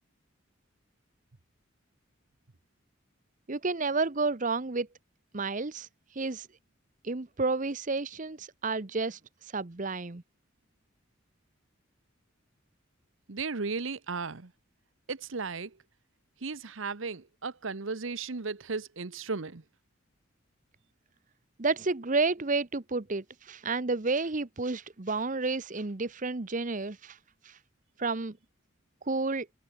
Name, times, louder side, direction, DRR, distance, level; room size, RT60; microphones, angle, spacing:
voice 1, 3.5-4.9 5.3-5.9 6.1-6.5 7.0-10.2 21.6-27.2 27.4-27.6 28.0-28.4 29.1-29.5, right 3 dB, 40° right, 0.9 m, -31 dB
voice 2, 13.3-14.5 15.1-15.7 16.4-19.6, right 4 dB, 80° right, 1.1 m, -35 dB
open air
head